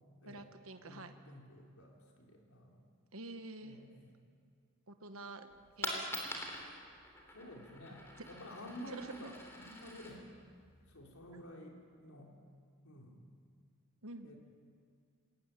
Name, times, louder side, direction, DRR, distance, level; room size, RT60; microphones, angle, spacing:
voice 1, 0.2-1.1 3.1-3.8 4.9-5.5 5.8-6.3 8.9-9.3 11.3-11.4 14.0-14.3, right 2 dB, 65° right, 7 dB, 1.2 m, -48 dB
voice 2, 0.8-2.8 3.6-4.1 7.3-10.2 10.9-12.4 12.8-13.4 14.2-14.4, equal, 75° left, -1 dB, 3.9 m, -51 dB
Coin (dropping), 5.5-11.5, left 1 dB, 10° left, 3.6 m, -46 dB
21.0 x 17.5 x 9.3 m, 2.2 s
head